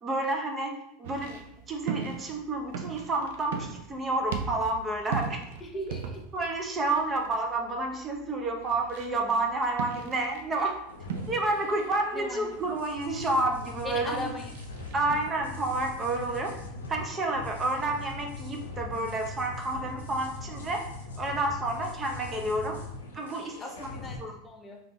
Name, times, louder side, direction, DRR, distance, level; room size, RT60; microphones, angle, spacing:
voice 1, 0.0-0.7 1.0-1.4 1.7-5.4 6.3-10.8 11.3-14.2 14.9-16.5 16.9-20.8 21.2-22.8 23.1-23.9 24.2-24.4, right 2 dB, 25° right, 2 dB, 0.6 m, -30 dB
sound 1, 1.0-15.2, right 6 dB, 70° right, 0.4 m, -40 dB
voice 2, 5.6-6.2 12.1-12.5 13.8-14.5 23.6-24.8, left 1 dB, 25° left, 2 dB, 0.6 m, -38 dB
sound 2, 10.9-24.2, left 2 dB, 85° left, 0.5 m, -41 dB
3.3 x 2.4 x 3.0 m, 0.78 s
hypercardioid pair, 90°, 0 cm